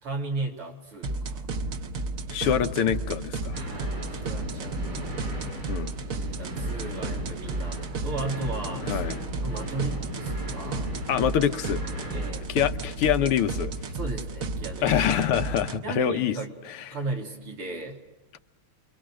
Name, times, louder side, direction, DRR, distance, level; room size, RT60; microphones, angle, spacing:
voice 1, 0.0-1.5 3.6-5.3 6.1-9.0 9.4-10.9 12.1-12.6 13.9-15.0 15.8-16.6 16.9-18.0, right 3 dB, 90° right, 1 dB, 4.3 m, -36 dB
sound 1, 1.0-15.8, right 2 dB, 50° right, 1.1 m, -33 dB
voice 2, 2.3-3.6 5.7-5.9 8.9-9.2 11.1-12.1 12.5-13.7 14.8-16.4, left 9 dB, 90° left, 9 dB, 1.9 m, -25 dB
sound 2, 3.5-12.3, equal, 70° right, 7.7 m, -38 dB
29.0 x 23.5 x 6.3 m, 1.1 s
omnidirectional pair, 2.4 m